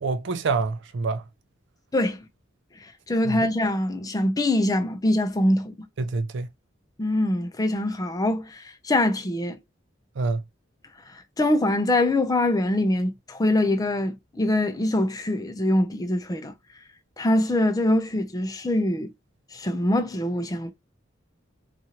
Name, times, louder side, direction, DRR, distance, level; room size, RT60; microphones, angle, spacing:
voice 1, 0.0-1.2 3.2-3.4 6.0-6.5 10.2-10.4, right 3 dB, 65° right, 0.4 m, -26 dB
voice 2, 3.1-5.9 7.0-9.6 11.4-16.5 17.2-19.1 19.5-20.7, left 1 dB, 20° left, 0.5 m, -23 dB
2.8 x 2.4 x 2.8 m
head